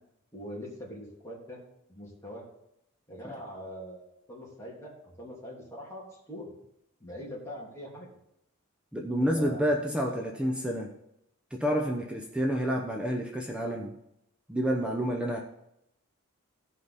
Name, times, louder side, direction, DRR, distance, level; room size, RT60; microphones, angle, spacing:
voice 1, 0.3-1.6 1.9-2.4 3.1-6.5 7.0-8.1 9.1-10.5, equal, 15° left, -5 dB, 3.1 m, -43 dB
voice 2, 8.9-10.9 11.5-14.0 14.5-15.4, equal, 5° right, 0 dB, 0.8 m, -29 dB
15.0 x 5.6 x 4.1 m, 0.80 s
head